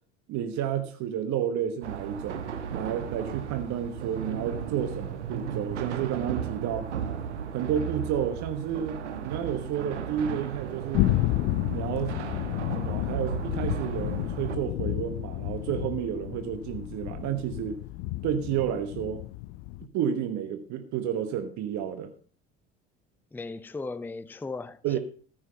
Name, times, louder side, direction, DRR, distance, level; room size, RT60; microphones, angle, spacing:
voice 1, 0.3-6.9 7.5-11.1 11.7-12.2 12.7-17.8 18.2-19.2 19.8-22.1 24.8-25.0, right 9 dB, 55° right, 1.2 m, -31 dB
sound 1, 1.8-14.6, right 8 dB, 85° right, 1.3 m, -35 dB
sound 2, 10.9-19.9, left 17 dB, 60° left, 0.6 m, -31 dB
voice 2, 23.3-25.0, left 3 dB, 5° left, 0.5 m, -37 dB
14.0 x 6.2 x 5.6 m
hypercardioid pair, 65°, 34 cm